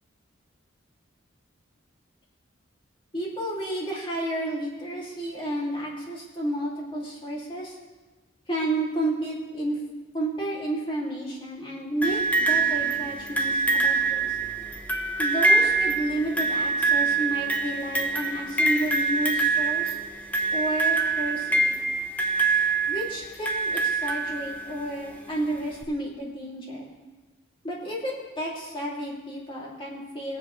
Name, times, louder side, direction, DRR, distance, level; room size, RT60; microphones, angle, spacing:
voice 1, 3.1-7.8 8.5-9.8 10.1-14.4 15.2-20.0 20.5-21.7 22.9-26.9 27.6-30.4, right 1 dB, 25° left, -3 dB, 2.6 m, -31 dB
sound 1, 12.0-24.8 25.8-25.9, right 3 dB, 10° left, 1.0 m, -25 dB
21.5 x 7.5 x 3.2 m, 1.2 s
head